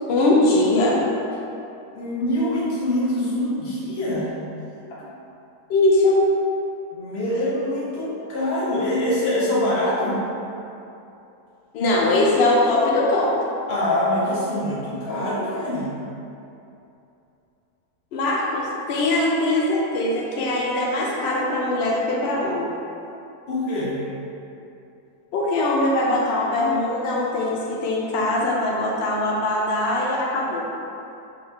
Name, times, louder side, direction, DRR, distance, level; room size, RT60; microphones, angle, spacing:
voice 1, 0.1-1.1 5.7-6.3 11.7-13.4 18.1-22.7 25.3-30.6, left 2 dB, 85° left, -3 dB, 0.5 m, -21 dB
voice 2, 1.9-4.3 6.9-10.2 13.7-15.9 23.5-24.0, left 1 dB, 50° left, -7 dB, 1.0 m, -24 dB
4.0 x 2.9 x 3.2 m, 2.8 s
omnidirectional pair, 1.7 m